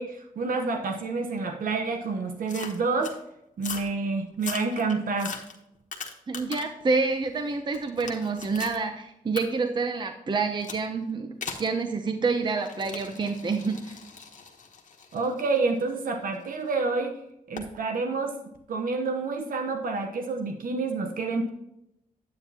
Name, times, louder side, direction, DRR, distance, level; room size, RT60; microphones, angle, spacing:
voice 1, 0.0-3.2 3.6-5.4 15.1-17.1 17.5-18.4 18.7-21.5, right 3 dB, 75° right, 4 dB, 1.0 m, -28 dB
sound 1, 2.5-3.2 3.6-3.9 4.3-6.8 7.2-8.8 9.4-9.5 10.6-10.9 11.4-11.7 12.6-16.6 17.6-17.7, left 5 dB, 60° left, 1.2 m, -40 dB
voice 2, 6.3-14.0, right 4 dB, 30° right, 6 dB, 0.6 m, -28 dB
9.6 x 8.9 x 2.9 m, 0.82 s
wide cardioid pair, 150°, 15 cm